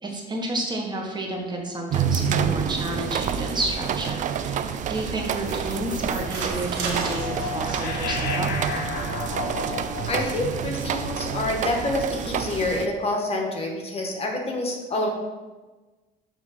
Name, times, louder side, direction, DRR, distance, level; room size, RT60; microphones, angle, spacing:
voice 1, 0.0-8.5, right 1 dB, 25° right, 1 dB, 1.2 m, -30 dB
sound 1, 1.9-12.9, right 8 dB, 50° right, 0.4 m, -28 dB
sound 2, 4.7-11.5, right 3 dB, 90° right, 1.6 m, -39 dB
sound 3, 5.4-11.8, left 5 dB, 60° left, 1.3 m, -34 dB
voice 2, 10.1-15.1, left 2 dB, 35° left, 1 dB, 1.2 m, -27 dB
7.0 x 3.5 x 5.0 m, 1.2 s
cardioid pair, 110°, 17 cm